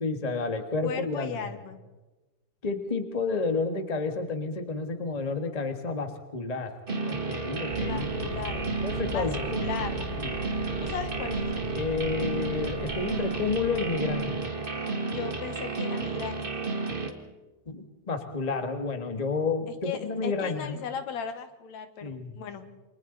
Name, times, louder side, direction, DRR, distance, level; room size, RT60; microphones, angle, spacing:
voice 1, 0.0-1.3 2.6-6.7 7.1-8.1 8.8-9.4 10.2-10.3 11.7-14.4 17.7-20.8 22.0-22.4, left 4 dB, 25° left, 6 dB, 0.9 m, -30 dB
voice 2, 0.8-1.8 7.8-8.6 9.1-10.1 10.8-11.5 15.0-16.5 19.7-22.7, left 7 dB, 65° left, 9 dB, 2.3 m, -37 dB
sound 1, 6.9-17.1, right 3 dB, 35° right, 0.8 m, -32 dB
sound 2, 7.7-14.3, right 1 dB, 80° right, 6.5 m, -38 dB
28.5 x 24.0 x 4.0 m, 1.1 s
omnidirectional pair, 3.6 m